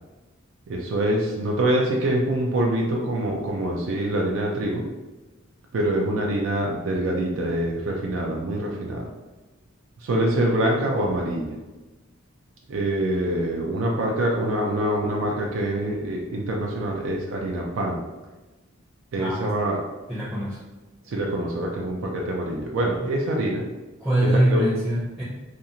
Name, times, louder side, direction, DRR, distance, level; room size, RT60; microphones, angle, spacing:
voice 1, 0.7-4.8 5.7-9.1 10.0-11.5 12.7-18.0 19.1-19.8 21.1-23.6 24.2-24.6, right 1 dB, 65° right, -1 dB, 0.4 m, -25 dB
voice 2, 20.1-20.6 23.0-23.1 24.0-25.2, right 1 dB, 10° right, -10 dB, 0.6 m, -23 dB
2.5 x 2.3 x 2.8 m, 1.2 s
head